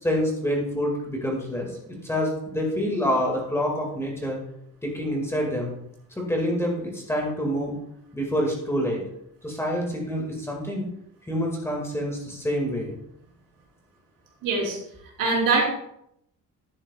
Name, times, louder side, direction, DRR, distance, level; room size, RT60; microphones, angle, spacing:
voice 1, 0.0-4.4 4.8-5.7 6.2-7.7 8.1-9.0 9.4-10.8 11.3-12.9, equal, 10° left, 0 dB, 1.9 m, -27 dB
voice 2, 14.4-14.8 15.2-15.7, right 3 dB, 85° right, -2 dB, 3.5 m, -22 dB
10.5 x 10.0 x 2.3 m, 0.74 s
cardioid pair, 160°, 33 cm